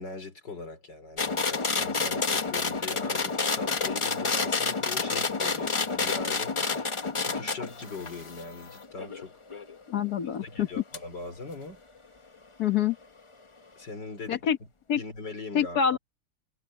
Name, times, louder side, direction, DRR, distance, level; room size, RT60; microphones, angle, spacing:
voice 1, 0.0-6.8 7.2-9.4 10.4-11.8 13.8-14.4 15.0-16.0, left 3 dB, 80° left, 5.1 m, -41 dB
sound 1, 1.2-9.7 10.9-11.0, left 4 dB, 30° left, 0.5 m, -29 dB
voice 2, 9.9-10.7 12.6-13.0 14.3-14.6 14.9-15.0 15.5-16.0, left 8 dB, 65° left, 1.8 m, -26 dB
omnidirectional pair, 1.9 m